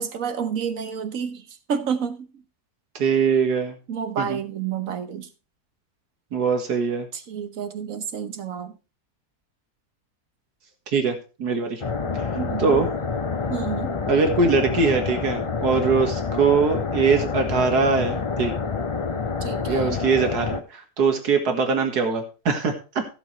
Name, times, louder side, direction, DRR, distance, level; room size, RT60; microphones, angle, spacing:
voice 1, 0.0-2.4 3.9-5.3 7.1-8.7 12.4-12.8 13.5-14.0 19.4-20.0, right 7 dB, 60° right, 10 dB, 1.5 m, -30 dB
voice 2, 2.9-3.8 4.2-4.4 6.3-7.1 10.9-11.8 12.6-12.9 14.1-18.5 19.7-23.1, right 5 dB, 80° right, 5 dB, 2.3 m, -22 dB
sound 1, 11.8-20.6, left 5 dB, 50° left, 0.3 m, -27 dB
15.5 x 8.2 x 3.2 m, 0.32 s
omnidirectional pair, 1.7 m